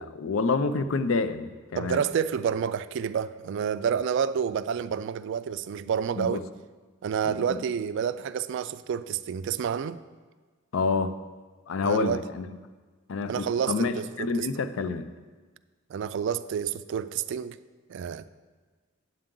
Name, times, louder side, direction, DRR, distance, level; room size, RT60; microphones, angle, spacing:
voice 1, 0.0-2.0 6.2-6.4 7.2-7.6 10.7-11.1 11.7-12.5 13.1-15.1, left 4 dB, 75° left, 0.5 m, -28 dB
voice 2, 1.7-6.4 7.0-10.0 11.8-12.2 13.3-14.5 15.9-17.6 17.9-18.3, right 7 dB, 60° right, 0.3 m, -29 dB
8.8 x 7.8 x 3.7 m
head